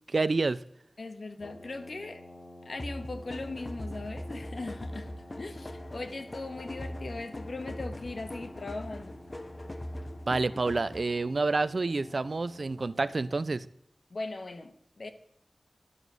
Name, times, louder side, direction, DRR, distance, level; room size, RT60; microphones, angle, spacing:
voice 1, 0.1-0.6 10.3-13.7, right 3 dB, 55° right, 0.4 m, -28 dB
voice 2, 1.0-2.2 2.6-9.2 14.1-15.1, left 3 dB, 60° left, 1.0 m, -39 dB
Brass instrument, 1.4-13.7, left 1 dB, 85° left, 2.0 m, -51 dB
sound 1, 2.8-11.2, left 1 dB, 30° left, 0.7 m, -41 dB
11.0 x 6.7 x 6.1 m
wide cardioid pair, 75°, 0 cm